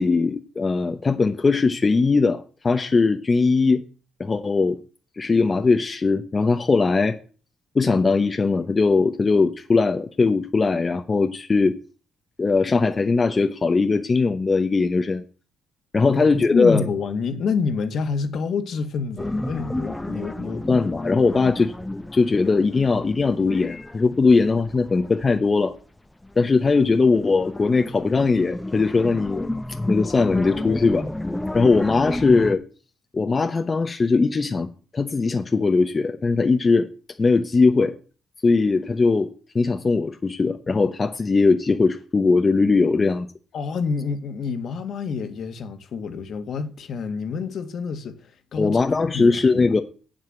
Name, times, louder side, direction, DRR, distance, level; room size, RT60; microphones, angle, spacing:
voice 1, 0.0-3.8 4.2-4.8 5.2-7.2 7.7-11.8 12.4-15.2 15.9-16.9 20.7-21.7 22.1-25.7 26.4-29.4 29.9-31.1 31.5-32.6 33.1-36.9 37.2-38.0 38.4-39.3 39.5-43.3 48.6-49.8, left 4 dB, 30° left, 1.0 m, -20 dB
voice 2, 16.5-20.7 43.5-48.8 49.1-49.4 49.7-49.8, left 5 dB, 65° left, 1.7 m, -28 dB
sound 1, 19.2-25.7 26.2-32.5, left 1 dB, 10° left, 0.7 m, -31 dB
8.1 x 7.8 x 7.9 m
cardioid pair, 90°, 0 cm